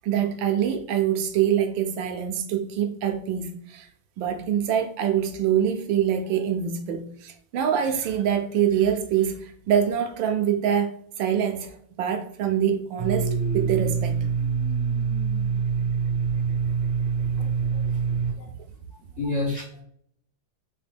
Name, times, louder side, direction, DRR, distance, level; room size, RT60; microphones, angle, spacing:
voice 1, 0.0-3.9 4.2-14.3, right 9 dB, 75° right, 5 dB, 1.2 m, -25 dB
Domestic sounds home sounds, 13.0-18.3, right 6 dB, 50° right, 0.9 m, -25 dB
voice 2, 17.4-18.0 18.4-18.5 18.9-19.8, left 2 dB, 75° left, -1 dB, 0.7 m, -32 dB
3.9 x 3.5 x 3.4 m, 0.66 s
omnidirectional pair, 2.3 m